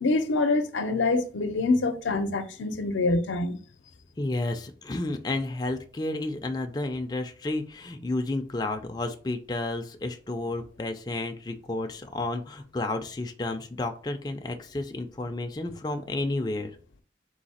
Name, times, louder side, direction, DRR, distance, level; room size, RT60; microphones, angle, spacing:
voice 1, 0.0-3.6, left 3 dB, 90° left, 0.6 m, -25 dB
voice 2, 4.2-16.8, left 2 dB, 20° left, 0.4 m, -31 dB
3.9 x 2.7 x 4.1 m
head